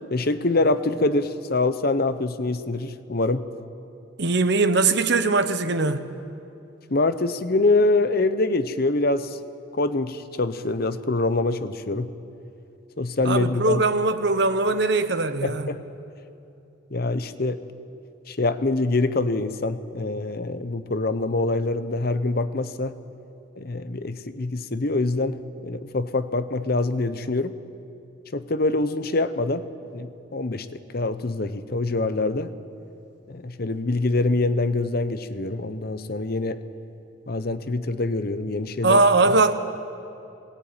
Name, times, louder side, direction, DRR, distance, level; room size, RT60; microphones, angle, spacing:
voice 1, 0.1-3.5 6.9-9.4 9.7-12.1 13.0-13.8 15.4-15.8 16.9-17.6 18.3-23.0 23.6-27.6 28.3-29.7 29.9-32.5 33.3-36.6 37.3-39.0, left 2 dB, 50° left, 0.9 m, -25 dB
voice 2, 4.2-6.0 13.2-15.7 38.8-39.5, right 3 dB, 60° right, 1.0 m, -21 dB
21.5 x 18.5 x 9.0 m
head